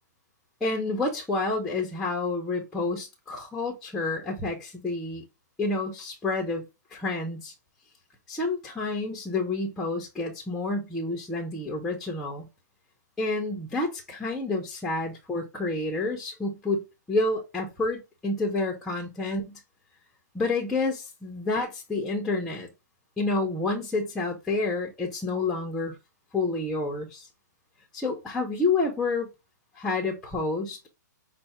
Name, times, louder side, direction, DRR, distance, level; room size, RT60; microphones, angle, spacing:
voice 1, 0.6-5.2 5.6-6.6 6.9-7.5 8.3-12.5 13.2-16.8 17.1-19.6 20.3-22.7 23.2-26.0 26.3-27.3 27.9-29.3 29.8-30.9, left 3 dB, 5° left, 0.5 m, -29 dB
5.5 x 2.0 x 4.1 m
hypercardioid pair, 170°, 10 cm